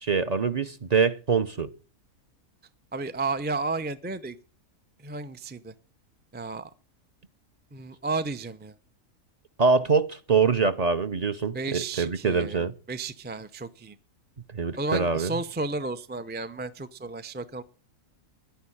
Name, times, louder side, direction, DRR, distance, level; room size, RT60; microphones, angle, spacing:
voice 1, 0.0-1.7 9.6-12.7 14.5-15.3, right 5 dB, 35° right, 0.7 m, -24 dB
voice 2, 2.9-4.4 5.0-5.7 6.3-6.7 7.7-8.8 11.5-14.0 14.8-17.6, right 3 dB, 15° right, 0.3 m, -33 dB
10.5 x 10.5 x 9.9 m
omnidirectional pair, 1.5 m